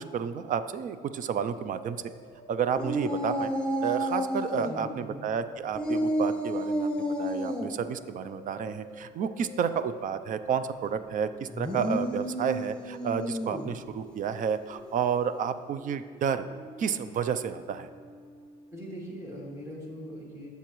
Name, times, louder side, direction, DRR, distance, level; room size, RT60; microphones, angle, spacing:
voice 1, 0.0-2.0 2.5-3.5 3.8-16.5 16.8-17.9, right 7 dB, 50° right, 12 dB, 0.5 m, -31 dB
sound 1, 1.4-18.8, right 1 dB, 85° right, 1.9 m, -50 dB
sound 2, 2.8-4.7 5.7-7.7 11.5-13.7, equal, 5° left, 1.2 m, -30 dB
voice 2, 4.5-5.2 18.7-20.5, equal, 15° right, -5 dB, 2.7 m, -41 dB
14.5 x 6.9 x 3.1 m, 2.1 s
cardioid pair, 110°, 17 cm